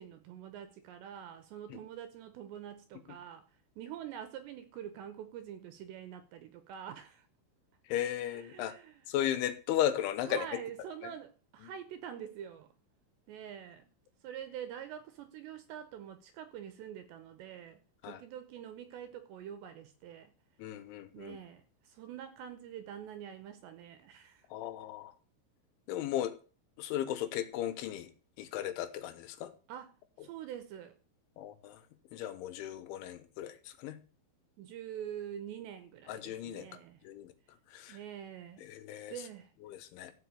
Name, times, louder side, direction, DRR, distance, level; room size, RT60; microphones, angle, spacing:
voice 1, 0.0-3.5 3.8-7.3 8.2-9.1 10.2-12.7 13.3-13.9 14.2-20.3 21.1-24.5 29.7-29.9 30.2-30.9 34.6-37.0 37.9-38.7 39.1-39.5, right 9 dB, 80° right, 2.6 m, -45 dB
voice 2, 7.9-8.7 9.1-10.6 18.0-18.2 20.6-21.4 24.5-25.1 25.9-26.4 26.8-28.1 28.4-29.5 31.4-31.8 32.1-34.0 36.1-36.7 37.0-37.3 37.7-38.0 38.6-39.2 39.6-40.1, left 11 dB, 75° left, 3.2 m, -36 dB
14.5 x 5.1 x 8.3 m
omnidirectional pair, 5.8 m